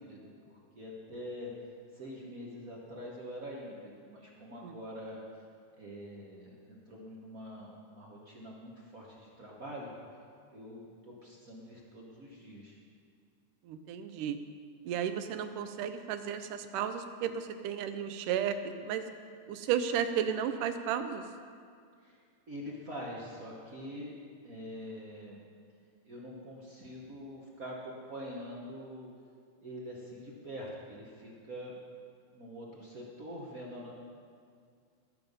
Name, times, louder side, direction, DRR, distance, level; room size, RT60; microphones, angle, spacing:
voice 1, 0.0-1.5 1.9-5.2 5.8-9.9 10.5-12.8 22.0-22.2 22.5-24.1 24.4-25.4 26.0-29.1 29.6-31.7 32.3-33.9, equal, 60° right, -3 dB, 0.9 m, -45 dB
voice 2, 13.7-14.4 14.9-19.1 19.5-21.2, right 8 dB, 85° right, 9 dB, 2.3 m, -33 dB
18.5 x 7.0 x 5.3 m, 2.2 s
omnidirectional pair, 3.6 m